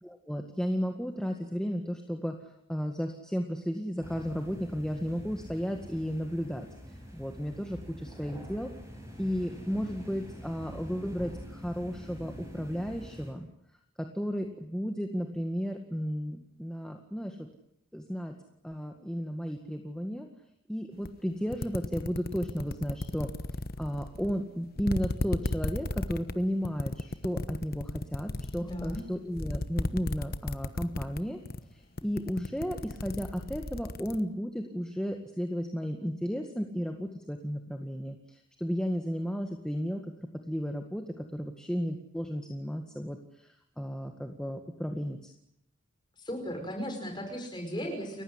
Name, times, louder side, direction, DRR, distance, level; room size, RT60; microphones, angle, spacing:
voice 1, 0.0-8.7 9.2-13.5 14.1-17.5 17.9-18.3 18.6-20.3 20.7-23.3 23.8-31.4 31.7-40.0 40.5-45.3, equal, 5° left, 3 dB, 1.8 m, -34 dB
sound 1, 4.0-13.3, equal, 15° right, 7.1 m, -46 dB
sound 2, 21.1-21.2 21.5-24.4 24.8-31.2 31.5-31.7 32.0-34.2, left 2 dB, 45° left, 1.1 m, -34 dB
voice 2, 28.6-29.0 46.2-48.2, equal, 20° left, 4 dB, 5.6 m, -36 dB
30.0 x 15.5 x 9.9 m, 0.75 s
head